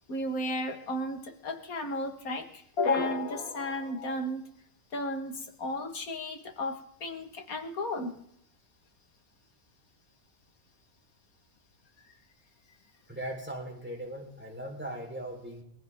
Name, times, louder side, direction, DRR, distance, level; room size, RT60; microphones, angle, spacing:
voice 1, 0.1-4.4 4.9-8.2, left 2 dB, 85° left, 5 dB, 2.2 m, -33 dB
voice 2, 13.1-15.6, right 1 dB, 5° right, -1 dB, 4.1 m, -39 dB
22.0 x 15.5 x 3.7 m, 0.73 s
omnidirectional pair, 1.5 m